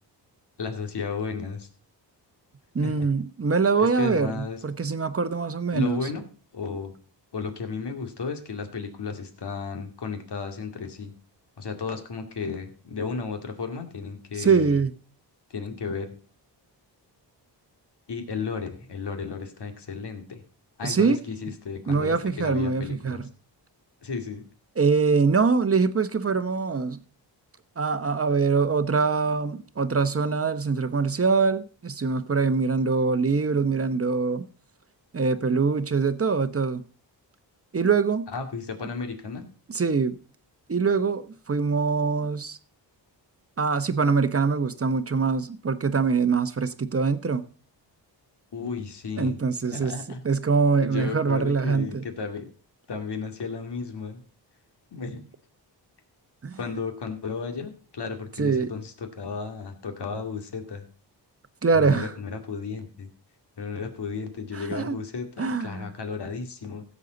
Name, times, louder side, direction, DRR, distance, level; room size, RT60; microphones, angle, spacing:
voice 1, 0.6-1.7 2.8-3.1 3.8-4.6 5.7-6.2 6.5-6.9 7.3-11.1 11.6-14.8 15.5-16.1 18.1-20.4 20.8-23.2 24.0-24.4 38.3-39.4 48.5-49.4 49.7-50.2 50.8-52.5 52.9-54.2 54.9-55.3 56.6-60.8 61.7-63.1 63.6-66.8, left 5 dB, 65° left, 2.3 m, -34 dB
voice 2, 2.7-6.0 14.4-14.9 20.8-21.2 21.9-23.2 24.8-27.0 27.8-34.4 35.1-36.8 37.7-38.3 39.7-40.1 40.7-42.6 43.6-47.4 49.2-49.9 50.2-52.0 56.4-56.6 58.4-58.7 61.6-62.1 64.5-65.0 65.4-65.9, right 4 dB, 30° right, 1.0 m, -23 dB
16.0 x 7.4 x 4.0 m
cardioid pair, 75°, 44 cm